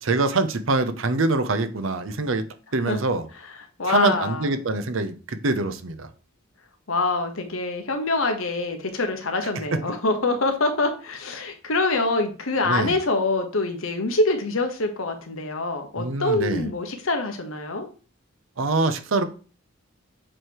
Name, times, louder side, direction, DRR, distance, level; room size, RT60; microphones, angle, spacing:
voice 1, 0.0-2.4 2.7-3.3 3.9-6.1 12.6-12.9 16.0-16.7 18.6-19.2, right 3 dB, 70° right, 10 dB, 0.8 m, -24 dB
voice 2, 3.8-4.5 6.9-17.9, left 2 dB, 75° left, 5 dB, 1.2 m, -25 dB
7.7 x 3.2 x 4.6 m, 0.37 s
head